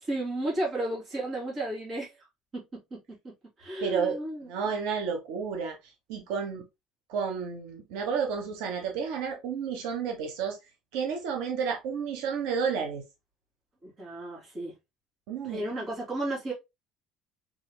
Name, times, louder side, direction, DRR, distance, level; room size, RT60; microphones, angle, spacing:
voice 1, 0.1-2.3 2.5-2.6 2.9-3.0 3.6-4.5 13.8-14.7 15.4-16.5, right 1 dB, 30° right, 3.2 m, -33 dB
voice 2, 3.8-4.2 4.5-5.8 6.1-6.6 7.1-10.6 10.9-13.0 15.3-15.6, right 6 dB, 80° right, 1.2 m, -31 dB
5.0 x 4.6 x 2.2 m
cardioid pair, 170°, 0 cm